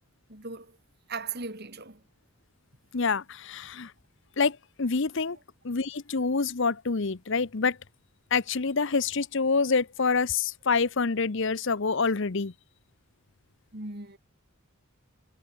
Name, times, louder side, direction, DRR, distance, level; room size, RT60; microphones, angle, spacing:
voice 1, 0.3-0.8 1.1-2.0 5.3-5.4 13.7-14.2, right 4 dB, 45° right, 3.4 m, -38 dB
voice 2, 2.9-3.9 4.4-5.4 5.6-7.8 8.3-12.5, left 4 dB, 55° left, 0.8 m, -27 dB
head